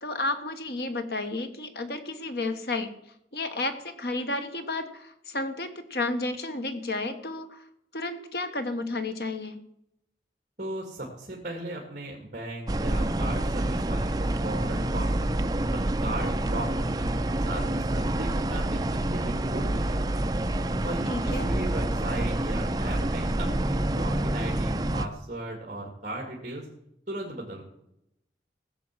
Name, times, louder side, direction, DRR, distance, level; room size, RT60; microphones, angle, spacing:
voice 1, 0.0-2.9 3.3-7.6 7.9-9.6 21.1-21.5, left 2 dB, 65° left, 8 dB, 1.3 m, -32 dB
voice 2, 10.6-15.4 15.7-17.1 17.4-20.2 20.8-26.7 27.1-27.6, right 1 dB, 45° right, 0 dB, 2.2 m, -37 dB
sound 1, 12.7-25.1, right 1 dB, 20° right, 0.5 m, -27 dB
16.0 x 7.1 x 7.4 m, 0.81 s
head